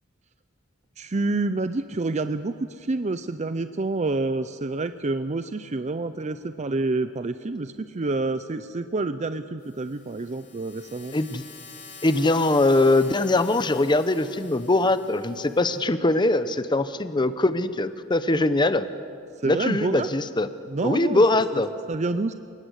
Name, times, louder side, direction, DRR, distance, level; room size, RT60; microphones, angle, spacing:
voice 1, 1.0-11.1 19.4-20.1 20.7-21.2 21.5-21.6 21.9-22.3, right 3 dB, 35° right, 10 dB, 0.6 m, -28 dB
sound 1, 9.6-15.8, left 5 dB, 50° left, 5.5 m, -47 dB
voice 2, 11.1-11.4 12.0-18.9 19.4-20.5 20.8-21.7, left 2 dB, 25° left, 12 dB, 0.7 m, -22 dB
27.5 x 19.0 x 8.2 m, 2.4 s
head